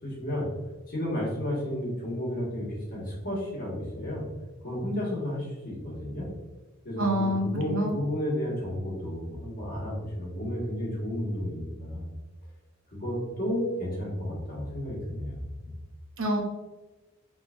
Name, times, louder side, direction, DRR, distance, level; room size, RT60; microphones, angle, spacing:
voice 1, 0.0-0.5 0.9-4.2 4.6-6.3 6.8-12.1 12.9-15.4, equal, 45° left, -5 dB, 1.3 m, -32 dB
voice 2, 7.0-8.0 16.2-16.4, equal, 80° right, 1 dB, 0.7 m, -27 dB
3.5 x 3.5 x 2.4 m, 1.1 s
head